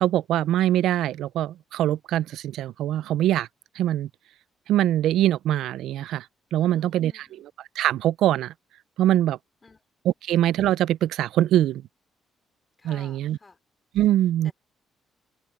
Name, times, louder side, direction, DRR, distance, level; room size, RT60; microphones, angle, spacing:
voice 1, 0.0-3.5 3.8-4.1 4.7-6.3 6.5-7.1 7.8-8.5 9.0-9.4 10.2-11.8 12.8-13.4 13.9-14.5, right 12 dB, 85° right, 0.3 m, -23 dB
voice 2, 6.6-7.4 9.6-9.8 12.8-13.6 14.4-14.5, left 3 dB, 25° left, 5.1 m, -51 dB
cardioid pair, 90°, 0 cm